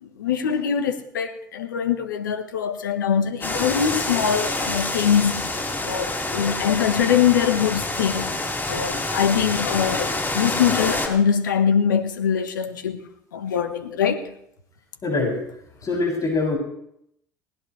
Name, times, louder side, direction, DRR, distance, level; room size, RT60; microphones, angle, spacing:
voice 1, 0.0-8.3 8.7-13.0 13.3-14.3, left 8 dB, 80° left, 1.5 m, -23 dB
sound 1, 3.4-11.1, left 2 dB, 20° left, 4.3 m, -27 dB
voice 2, 15.0-15.4 15.8-16.6, left 3 dB, 35° left, 7.6 m, -23 dB
19.5 x 19.0 x 3.3 m
figure-of-eight pair, 60°, 10 cm